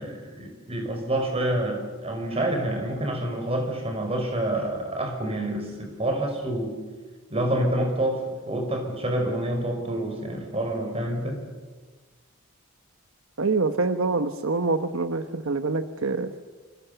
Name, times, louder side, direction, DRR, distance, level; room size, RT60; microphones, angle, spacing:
voice 1, 0.0-6.7 7.3-11.4, right 1 dB, 30° right, 3 dB, 5.7 m, -28 dB
voice 2, 13.4-16.3, right 3 dB, 75° right, 9 dB, 1.1 m, -25 dB
29.0 x 27.5 x 6.9 m, 1.3 s
head